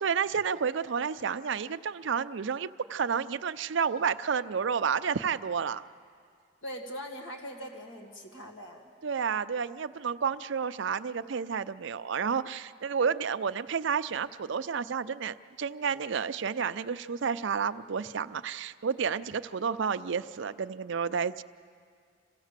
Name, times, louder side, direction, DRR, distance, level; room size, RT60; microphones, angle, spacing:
voice 1, 0.0-5.8 9.0-21.4, right 6 dB, 65° right, 13 dB, 0.5 m, -30 dB
voice 2, 6.6-8.9, equal, 65° left, 2 dB, 1.9 m, -41 dB
27.5 x 16.0 x 7.4 m, 2.2 s
head